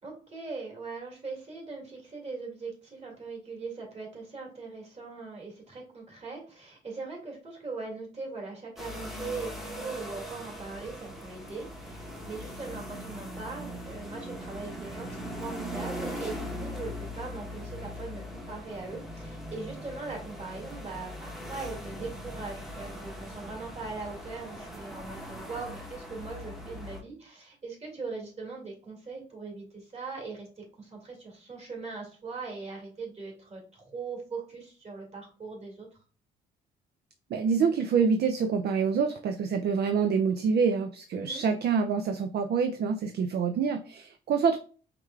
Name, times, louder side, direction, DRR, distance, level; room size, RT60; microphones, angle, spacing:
voice 1, 0.0-35.9 41.1-41.4, right 4 dB, 35° right, -1 dB, 2.1 m, -40 dB
sound 1, 8.8-27.0, equal, ahead, 0.9 m, -40 dB
voice 2, 37.3-44.6, right 6 dB, 55° right, 6 dB, 0.5 m, -26 dB
4.8 x 3.3 x 2.3 m, 0.40 s
cardioid pair, 90°, 20 cm